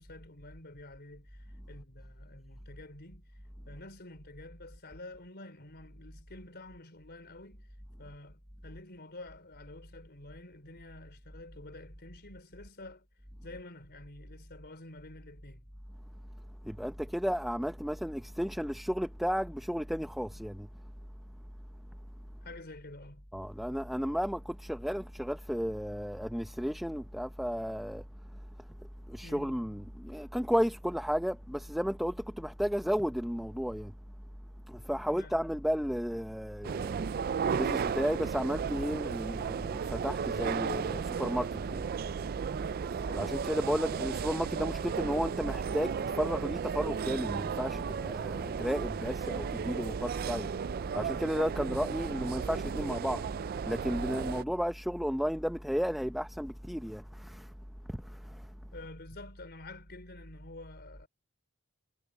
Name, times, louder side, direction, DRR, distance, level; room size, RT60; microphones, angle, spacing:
voice 1, 0.0-3.3 3.7-7.7 8.0-13.1 13.4-15.7 22.4-23.3 29.2-29.6 34.9-35.4 43.1-43.4 58.7-61.1, left 2 dB, 50° left, 4.2 m, -49 dB
voice 2, 16.6-20.7 23.3-28.0 28.6-28.7 29.1-33.9 34.7-37.0 37.5-41.9 43.1-50.5 50.9-53.2 53.7-57.5 57.9-58.5, equal, ahead, 0.8 m, -33 dB
sound 1, 36.6-54.4, right 6 dB, 45° right, 0.3 m, -34 dB
head